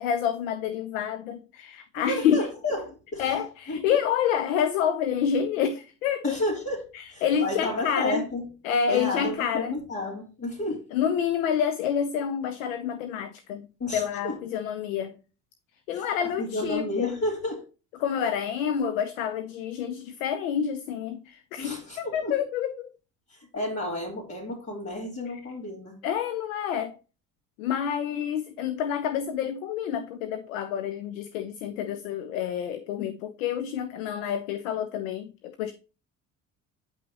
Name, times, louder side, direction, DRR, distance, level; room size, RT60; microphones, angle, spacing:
voice 1, 0.0-2.5 3.2-6.3 6.9-8.2 8.6-9.8 10.9-13.6 13.9-15.1 15.9-17.1 18.0-22.9 25.3-25.4 26.0-27.0 27.6-35.7, left 8 dB, 85° left, 0.8 m, -28 dB
voice 2, 1.9-3.3 3.7-4.0 6.2-6.8 7.1-8.5 8.9-10.9 13.8-14.4 15.9-16.1 16.4-17.6 21.6-22.4 23.3-26.0, left 1 dB, 40° left, 3.4 m, -31 dB
9.6 x 5.6 x 2.9 m
hypercardioid pair, 60°, 39 cm